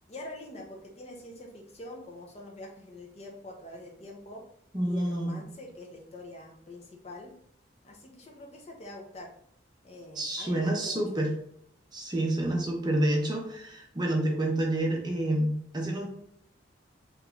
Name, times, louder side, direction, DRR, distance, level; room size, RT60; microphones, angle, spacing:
voice 1, 0.1-4.4 4.8-7.3 7.8-9.3 9.8-11.0, left 1 dB, 35° left, 2 dB, 0.5 m, -45 dB
voice 2, 4.7-5.4 10.2-11.3 11.9-16.1, right 1 dB, 20° right, 0 dB, 0.5 m, -28 dB
3.5 x 2.9 x 2.3 m, 0.67 s
head